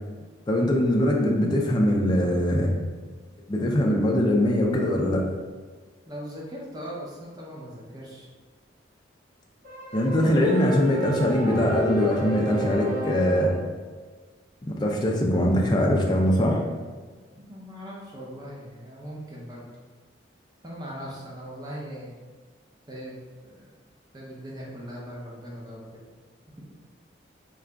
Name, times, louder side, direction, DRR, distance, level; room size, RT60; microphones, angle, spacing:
voice 1, 0.5-2.7 3.5-5.2 9.9-13.5 14.6-16.6, left 1 dB, 25° left, -1 dB, 0.4 m, -22 dB
voice 2, 6.1-8.3 17.3-19.7 20.6-22.1 22.9-23.7 24.1-25.8, equal, 20° right, -4 dB, 0.7 m, -39 dB
sound 1, 9.6-13.7, equal, 45° right, 1.1 m, -32 dB
3.8 x 2.4 x 3.3 m, 1.4 s
head